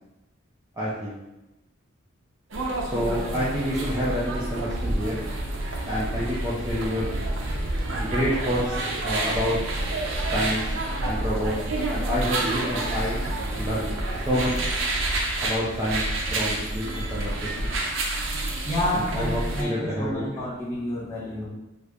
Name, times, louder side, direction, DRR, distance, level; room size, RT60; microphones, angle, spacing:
voice 1, 0.7-1.2 2.9-5.2 5.9-7.1 8.0-9.6 10.3-10.7 11.0-11.6 11.9-13.2 13.5-14.0 14.3-14.7 15.4-17.7 18.9-20.4, equal, 15° right, -8 dB, 0.4 m, -28 dB
sound 1, 2.5-19.6, right 2 dB, 70° right, 0.5 m, -28 dB
voice 2, 18.6-21.5, left 1 dB, 15° left, -11 dB, 1.1 m, -29 dB
2.7 x 2.4 x 3.3 m, 0.98 s
head